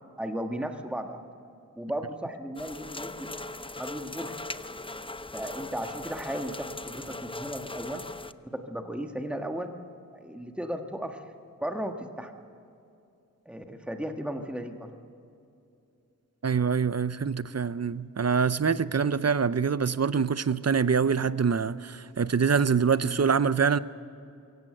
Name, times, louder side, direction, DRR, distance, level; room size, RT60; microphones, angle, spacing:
voice 1, 0.2-1.2 1.7-3.5 3.8-4.3 5.3-8.0 8.4-9.7 10.1-11.2 11.6-12.3 13.4-14.9, right 1 dB, 5° right, 1.5 m, -35 dB
sound 1, 2.6-8.3, left 2 dB, 15° left, 0.6 m, -39 dB
voice 2, 16.4-23.8, right 6 dB, 50° right, 0.6 m, -25 dB
23.0 x 17.0 x 7.9 m
wide cardioid pair, 65°, 33 cm